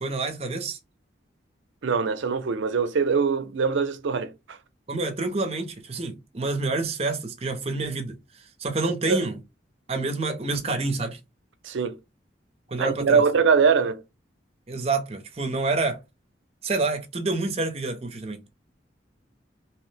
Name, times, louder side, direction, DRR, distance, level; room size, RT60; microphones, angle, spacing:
voice 1, 0.0-0.8 4.9-8.2 8.6-9.4 9.9-11.2 12.7-13.2 14.7-16.0 16.6-18.5, right 3 dB, 35° right, 0.5 m, -28 dB
voice 2, 1.8-4.6 9.1-9.2 11.6-12.0 12.8-14.0, right 5 dB, 85° right, 0.5 m, -22 dB
2.9 x 2.0 x 3.2 m
head